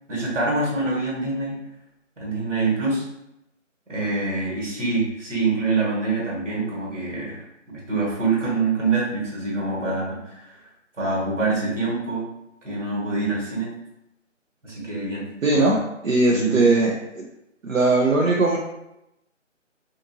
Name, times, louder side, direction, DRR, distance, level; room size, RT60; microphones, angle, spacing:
voice 1, 0.1-1.6 2.2-3.0 3.9-7.4 7.9-10.5 11.0-12.3 12.6-13.7 14.6-15.3 15.5-15.7 16.3-16.7, right 3 dB, 70° right, -5 dB, 1.5 m, -25 dB
voice 2, 15.4-17.3 17.6-18.6, right 2 dB, 85° right, -2 dB, 0.7 m, -20 dB
2.6 x 2.5 x 2.6 m, 0.87 s
figure-of-eight pair, 170°, 38 cm